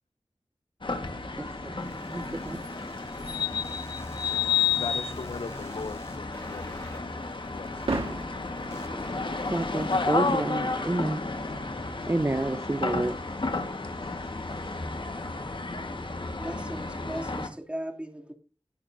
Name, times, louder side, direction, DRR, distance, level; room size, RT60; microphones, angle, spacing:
sound 1, 0.8-17.5, left 4 dB, 60° left, 1.6 m, -32 dB
voice 1, 1.1-3.8 9.5-11.2 12.1-13.2, right 2 dB, 30° right, 0.8 m, -31 dB
sound 2, 1.8-10.1, left 1 dB, 25° left, 2.4 m, -50 dB
voice 2, 4.7-7.9, left 4 dB, 80° left, 0.7 m, -40 dB
sound 3, 5.3-15.3, right 2 dB, 90° right, 2.8 m, -42 dB
voice 3, 16.4-18.3, right 1 dB, 10° right, 2.8 m, -37 dB
19.0 x 6.8 x 2.7 m
cardioid pair, 40°, 9 cm